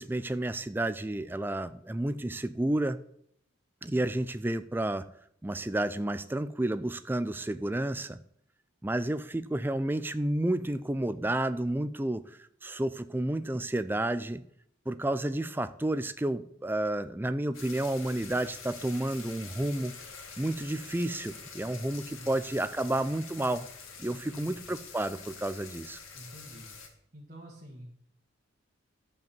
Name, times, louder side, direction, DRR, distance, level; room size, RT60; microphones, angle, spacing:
voice 1, 0.0-3.0 3.8-5.1 5.4-8.2 8.8-12.2 12.6-14.4 14.9-19.9 20.4-23.7 24.0-26.0, right 1 dB, 10° right, 13 dB, 0.3 m, -31 dB
sound 1, 17.5-26.9, left 5 dB, 85° left, 1.8 m, -46 dB
voice 2, 22.0-22.9 24.1-24.7 26.1-26.7 27.1-27.9, equal, 40° right, -3 dB, 1.8 m, -48 dB
12.0 x 5.4 x 7.1 m, 0.69 s
head